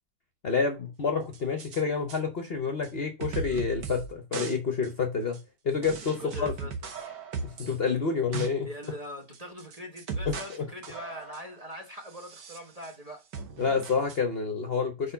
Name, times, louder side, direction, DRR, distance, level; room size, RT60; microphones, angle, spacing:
voice 1, 0.4-5.4 5.6-6.5 7.4-8.7 10.3-10.6 13.6-15.1, left 5 dB, 45° left, 0.9 m, -28 dB
sound 1, 1.3-1.8 2.1-2.2 2.8-2.9 3.2-4.1 4.3-4.6 4.8-4.9 5.3-5.4 5.8-7.8 8.1-8.5 8.8-8.9 9.3-10.6 10.8-11.5 12.1-13.0 13.3-14.2, right 4 dB, 85° right, 1.8 m, -37 dB
voice 2, 6.0-6.9 8.6-13.2, equal, 25° right, 1.1 m, -42 dB
5.2 x 4.2 x 5.5 m
omnidirectional pair, 1.8 m